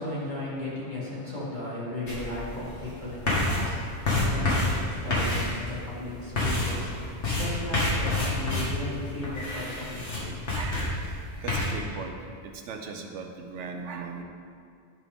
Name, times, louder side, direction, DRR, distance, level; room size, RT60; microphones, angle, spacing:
voice 1, 0.0-10.5, left 1 dB, 40° left, -8 dB, 2.1 m, -36 dB
sound 1, 2.1-11.7, left 2 dB, 70° left, 2.2 m, -29 dB
voice 2, 9.9-11.0 11.3-12.1 12.4-14.2, right 5 dB, 75° right, 4 dB, 1.1 m, -39 dB
10.5 x 6.0 x 3.6 m, 2.2 s
omnidirectional pair, 1.2 m